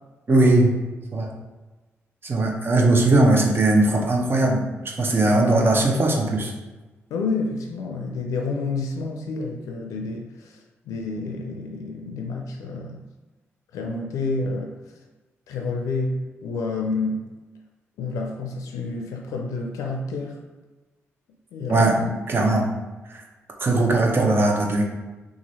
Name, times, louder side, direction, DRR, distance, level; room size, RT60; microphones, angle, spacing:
voice 1, 0.3-0.7 1.1-1.3 2.2-4.6 5.0-6.5 21.7-22.0 22.3-22.7 23.1-23.2 23.6-24.8, right 2 dB, 45° right, 0 dB, 0.8 m, -19 dB
voice 2, 5.3-5.7 7.1-10.6 10.9-13.0 13.7-14.7 15.5-17.3 18.0-20.4 21.5-22.1, left 3 dB, 85° left, 2 dB, 0.4 m, -29 dB
2.9 x 2.5 x 4.0 m, 1.2 s
supercardioid pair, 60°, 5 cm